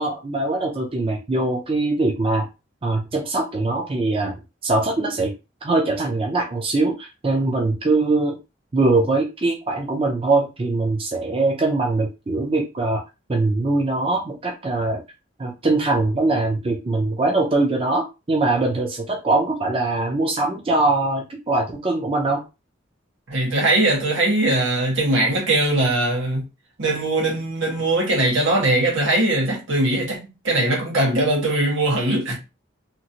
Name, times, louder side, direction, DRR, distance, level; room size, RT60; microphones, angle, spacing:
voice 1, 0.0-2.5 2.8-5.3 5.6-8.4 8.7-13.0 13.3-15.0 15.4-22.4, right 2 dB, 30° right, 0.5 m, -22 dB
voice 2, 23.3-26.4 26.8-30.2 30.4-32.4, right 2 dB, 80° right, 1.3 m, -20 dB
2.9 x 2.5 x 2.8 m
head